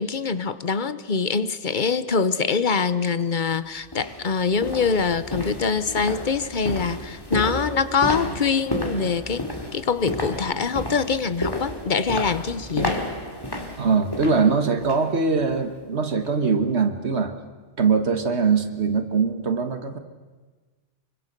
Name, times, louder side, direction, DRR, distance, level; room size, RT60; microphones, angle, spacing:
voice 1, 0.0-9.5 9.7-13.0, left 5 dB, 45° left, 14 dB, 1.1 m, -24 dB
sound 1, 3.2-3.3 3.9-15.1 15.5-15.7 16.2-16.3, left 1 dB, 20° left, 2.6 m, -32 dB
voice 2, 13.8-17.3 17.8-20.0, right 5 dB, 70° right, 8 dB, 1.8 m, -22 dB
25.0 x 24.0 x 6.7 m, 1.3 s
omnidirectional pair, 1.2 m